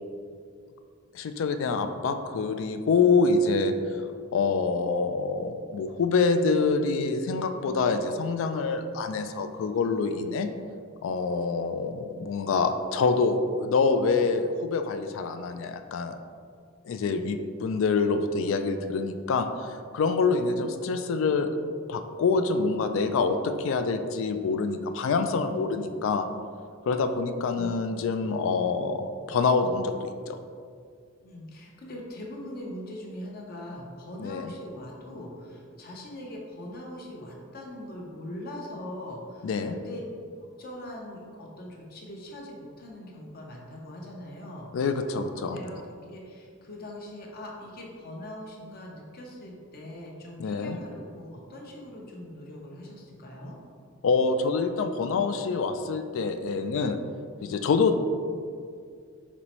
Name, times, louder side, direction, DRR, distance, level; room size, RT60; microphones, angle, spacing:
voice 1, 1.1-3.7 4.3-10.5 11.0-16.2 16.8-21.5 21.9-26.3 26.9-30.4 34.2-34.5 39.4-39.8 44.7-45.6 50.4-50.8 54.0-57.0 57.4-58.0, left 4 dB, 65° left, 8 dB, 0.3 m, -26 dB
voice 2, 16.9-17.2 27.5-27.8 31.2-40.0 40.6-45.8 46.1-53.6, left 1 dB, 45° left, -2 dB, 0.7 m, -41 dB
5.4 x 3.1 x 3.0 m, 2.2 s
head